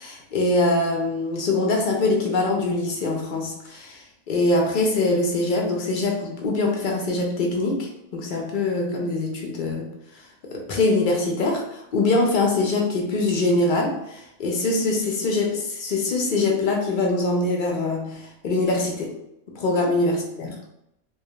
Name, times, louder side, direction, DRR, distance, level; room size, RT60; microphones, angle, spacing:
voice 1, 0.0-9.9 10.5-19.1 19.5-20.5, left 2 dB, 60° left, 0 dB, 0.5 m, -23 dB
2.3 x 2.2 x 2.8 m, 0.81 s
omnidirectional pair, 1.3 m